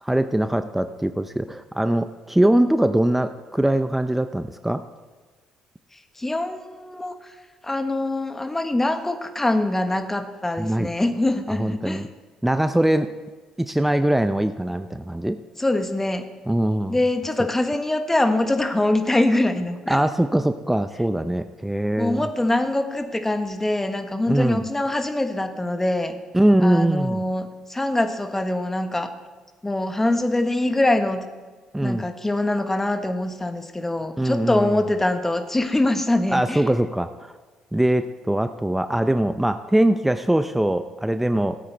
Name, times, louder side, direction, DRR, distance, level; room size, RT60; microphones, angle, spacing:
voice 1, 0.0-4.8 10.6-10.9 11.6-12.1 12.4-13.1 13.6-15.4 16.5-17.0 19.9-22.3 24.3-24.6 26.3-27.2 31.7-32.1 34.2-34.8 36.3-37.3 37.7-41.6, right 1 dB, 10° right, 10 dB, 0.6 m, -22 dB
voice 2, 6.2-7.3 7.6-12.1 15.6-16.3 16.9-20.0 22.0-26.1 26.6-29.1 29.6-31.3 31.8-36.6, left 1 dB, 15° left, 7 dB, 1.3 m, -23 dB
17.5 x 8.6 x 3.4 m, 1.3 s
hypercardioid pair, 55°, 2 cm